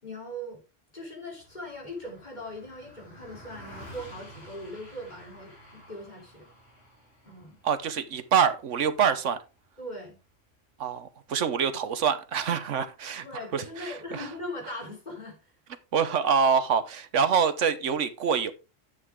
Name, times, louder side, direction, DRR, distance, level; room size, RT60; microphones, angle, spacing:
voice 1, 0.0-0.6 0.9-6.5 7.2-7.6 9.8-10.2 13.2-15.5, left 1 dB, 35° left, 3.7 m, -40 dB
Car passing by, 1.4-11.0, equal, 55° left, 3.8 m, -51 dB
voice 2, 7.6-9.4 10.8-13.3 13.5-14.3 15.9-18.5, right 7 dB, 75° right, 1.2 m, -25 dB
10.5 x 7.8 x 3.6 m
omnidirectional pair, 1.3 m